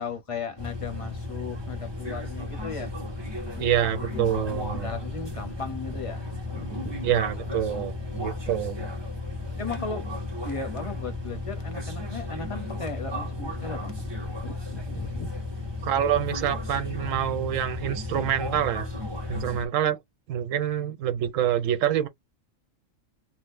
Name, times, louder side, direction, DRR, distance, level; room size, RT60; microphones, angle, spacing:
voice 1, 0.0-2.9 3.4-7.0 9.6-10.1 10.4-14.1 14.4-15.4, left 4 dB, 30° left, 0.7 m, -37 dB
sound 1, 0.6-19.7, left 2 dB, 20° right, 1.1 m, -34 dB
voice 2, 3.6-4.9 7.0-8.8 15.8-18.9 19.3-20.0 20.3-22.1, right 10 dB, 90° right, 1.0 m, -26 dB
2.7 x 2.3 x 3.5 m
omnidirectional pair, 1.3 m